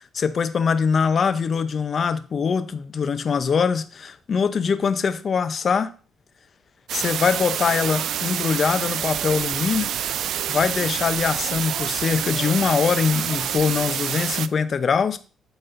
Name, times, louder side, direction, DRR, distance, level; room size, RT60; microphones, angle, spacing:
voice 1, 0.1-5.9 6.9-9.9 10.5-15.2, left 6 dB, 45° left, 0.6 m, -23 dB
sound 1, 6.9-14.5, right 10 dB, 70° right, 0.3 m, -27 dB
12.0 x 4.2 x 2.6 m
cardioid pair, 90°, 0 cm